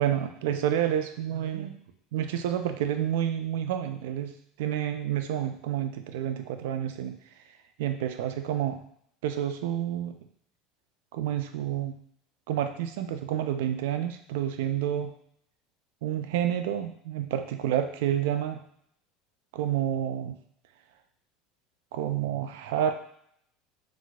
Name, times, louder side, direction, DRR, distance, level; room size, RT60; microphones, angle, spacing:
voice 1, 0.0-1.8 2.1-4.3 4.6-7.2 7.8-8.8 9.2-10.2 11.1-12.0 12.5-15.1 16.0-18.6 19.5-20.4 21.9-22.9, right 10 dB, 90° right, 8 dB, 0.3 m, -29 dB
3.9 x 2.5 x 2.3 m, 0.69 s
supercardioid pair, 145°, 0 cm